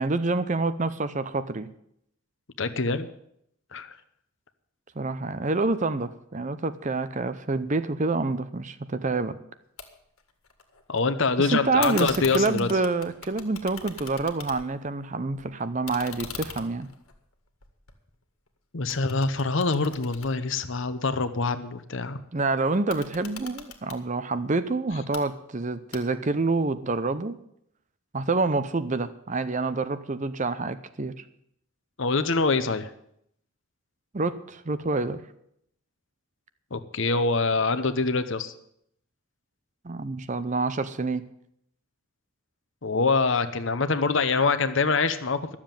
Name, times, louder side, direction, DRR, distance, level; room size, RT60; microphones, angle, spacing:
voice 1, 0.0-1.7 5.0-9.3 11.4-16.9 22.3-27.4 28.1-31.2 34.1-35.2 39.8-41.2, right 3 dB, 35° right, 12 dB, 0.6 m, -27 dB
voice 2, 2.6-3.1 3.7-4.0 10.9-12.7 18.7-22.2 32.0-32.9 36.7-38.5 42.8-45.6, left 4 dB, 60° left, 11 dB, 0.9 m, -25 dB
sound 1, 9.8-9.9 10.2-11.0 11.8-14.9 15.2-18.5 18.9-21.1 22.7-24.0 24.9-25.2 25.9-26.4, left 7 dB, 75° left, 1.7 m, -41 dB
12.5 x 7.3 x 9.0 m, 0.74 s
head